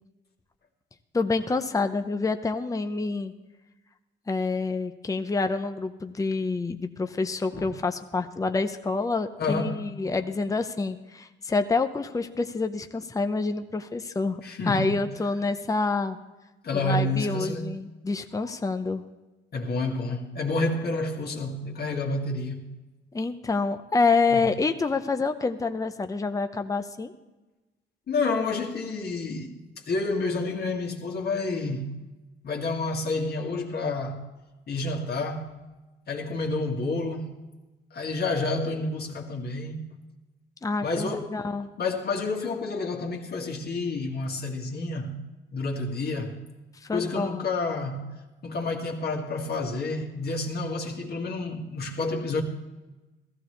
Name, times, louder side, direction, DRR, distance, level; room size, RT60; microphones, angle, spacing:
voice 1, 1.1-3.3 4.3-16.2 16.8-19.0 23.1-27.1 40.6-41.7 46.9-47.4, left 3 dB, 15° left, 0.7 m, -27 dB
voice 2, 9.4-9.8 14.4-15.0 16.6-17.8 19.5-22.7 24.3-24.5 28.1-29.6 29.9-32.0 32.4-34.2 34.7-35.6 36.1-37.4 37.9-39.9 40.8-41.4 41.8-45.2 45.5-46.4 46.9-48.1 48.4-52.4, left 3 dB, 55° left, 2.0 m, -29 dB
15.0 x 14.5 x 3.3 m
cardioid pair, 90°, 20 cm